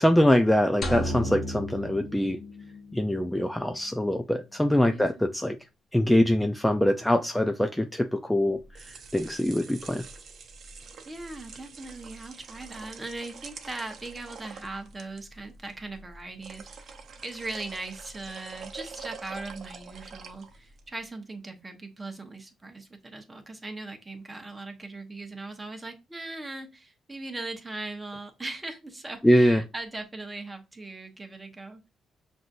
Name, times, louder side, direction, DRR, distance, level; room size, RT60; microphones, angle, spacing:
voice 1, 0.0-2.4 2.9-5.6 5.9-10.0 29.2-29.6, left 1 dB, 5° left, 7 dB, 0.4 m, -23 dB
sound 1, 0.8-3.1, equal, 50° left, 0.9 m, -33 dB
voice 2, 4.9-5.3 11.1-31.8, right 2 dB, 20° right, 5 dB, 0.9 m, -39 dB
sound 2, 8.5-20.9, right 5 dB, 55° right, 0.7 m, -46 dB
5.9 x 2.6 x 2.5 m, 0.26 s
cardioid pair, 90°, 0 cm